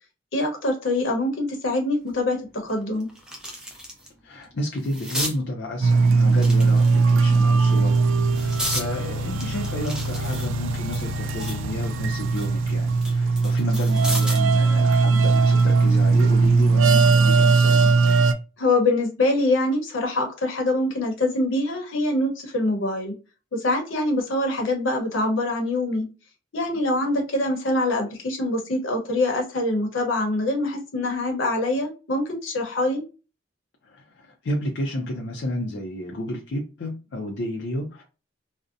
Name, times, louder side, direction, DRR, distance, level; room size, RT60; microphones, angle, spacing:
voice 1, 0.3-3.1 18.6-23.1 23.5-26.1 26.5-33.0, left 2 dB, 80° left, 0.8 m, -24 dB
sound 1, 2.1-2.2 2.6-4.1 4.4-5.4 6.3-7.2 7.8-8.9 9.4-11.6 12.0-14.5 15.9-16.1, equal, 5° right, 0.4 m, -33 dB
voice 2, 4.2-8.0 8.3-18.1 33.8-38.0, left 1 dB, 60° left, 0.4 m, -31 dB
sound 2, 5.8-18.3, right 4 dB, 80° right, 0.3 m, -19 dB
2.6 x 2.0 x 2.4 m
head